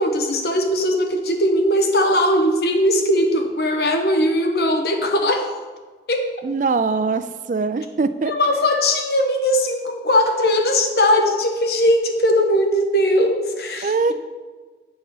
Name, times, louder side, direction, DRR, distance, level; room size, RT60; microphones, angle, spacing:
voice 1, 0.0-5.5 6.1-6.3 8.2-14.1, left 1 dB, 60° left, 5 dB, 1.0 m, -19 dB
voice 2, 6.4-8.3 13.8-14.1, right 4 dB, 45° right, 12 dB, 0.3 m, -22 dB
8.4 x 4.6 x 5.6 m, 1.4 s
head